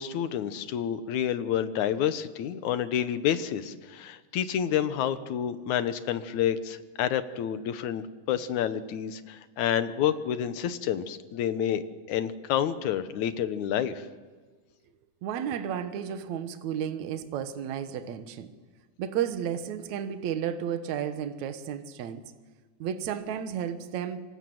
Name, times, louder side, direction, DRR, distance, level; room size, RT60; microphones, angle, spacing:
voice 1, 0.0-14.1, left 9 dB, 65° left, 11 dB, 2.3 m, -29 dB
voice 2, 15.2-18.5 19.0-22.2 22.8-24.2, right 9 dB, 60° right, 9 dB, 2.4 m, -32 dB
26.5 x 26.5 x 7.9 m, 1.4 s
omnidirectional pair, 4.0 m